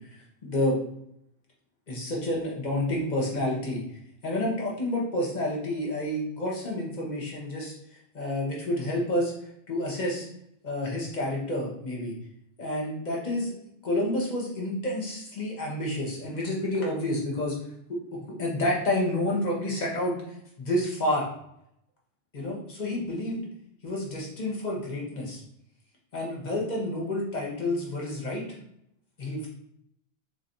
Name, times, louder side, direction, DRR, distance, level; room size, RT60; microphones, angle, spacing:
voice 1, 0.4-0.8 1.9-3.8 4.2-7.7 8.1-9.3 9.7-10.3 10.6-12.1 12.6-13.5 13.8-17.6 17.9-20.2 20.6-21.3 22.3-23.4 23.8-25.4 26.1-28.5 29.2-29.5, left 1 dB, 45° left, -3 dB, 1.0 m, -29 dB
3.5 x 3.2 x 2.6 m, 0.75 s
omnidirectional pair, 1.1 m